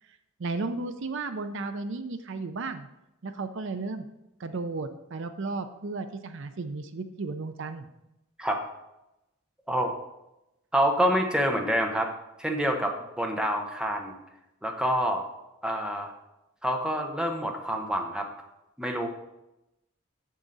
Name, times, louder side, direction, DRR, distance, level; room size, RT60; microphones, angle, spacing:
voice 1, 0.4-2.9 3.2-4.1 4.4-7.9, right 3 dB, 60° right, 9 dB, 0.5 m, -34 dB
voice 2, 10.7-12.1 12.4-14.1 14.6-15.2 15.6-16.1 16.6-18.3 18.8-19.1, equal, 5° right, 2 dB, 0.8 m, -27 dB
7.5 x 7.2 x 4.0 m, 0.90 s
head